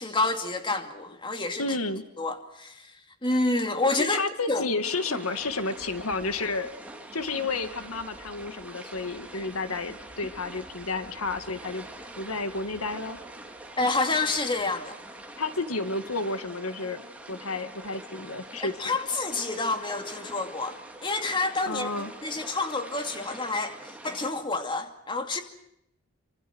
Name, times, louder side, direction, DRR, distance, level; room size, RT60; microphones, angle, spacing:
voice 1, 0.0-1.6 2.2-2.9 3.2-4.6 13.8-15.0 18.6-21.9 22.2-25.4, left 2 dB, 20° left, 6 dB, 2.5 m, -28 dB
voice 2, 1.6-2.0 4.1-6.7 7.1-11.9 12.2-13.2 15.4-17.0 17.3-18.7 21.7-22.1, left 3 dB, 85° left, 9 dB, 1.9 m, -31 dB
sound 1, 4.8-24.3, right 1 dB, 5° right, 2.9 m, -44 dB
28.5 x 25.5 x 6.2 m, 0.79 s
head